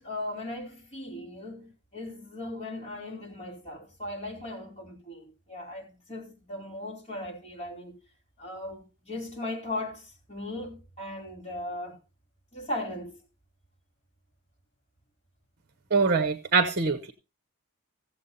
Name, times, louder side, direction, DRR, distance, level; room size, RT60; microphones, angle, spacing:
voice 1, 0.0-8.0 8.4-12.0 12.5-13.1, left 1 dB, 30° left, 4.5 m, -38 dB
voice 2, 15.9-17.1, right 4 dB, 45° right, 0.9 m, -24 dB
16.0 x 7.6 x 4.2 m
head